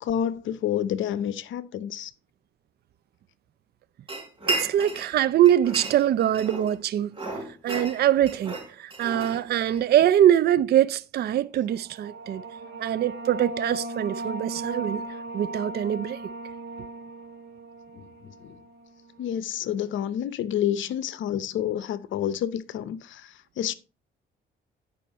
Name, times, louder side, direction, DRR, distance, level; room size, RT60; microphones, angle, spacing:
voice 1, 0.0-2.1 17.9-18.6 19.2-23.7, left 10 dB, 75° left, 0.7 m, -29 dB
sound 1, 4.1-5.1 5.5-6.7 7.1-9.8, right 2 dB, 25° right, 4.4 m, -33 dB
voice 2, 4.5-7.1 7.6-12.4 12.8-15.0 15.3-16.2, right 11 dB, 55° right, 0.4 m, -23 dB
sound 2, 11.7-19.0, right 2 dB, 80° right, 1.3 m, -37 dB
9.1 x 5.6 x 4.1 m
cardioid pair, 90°, 20 cm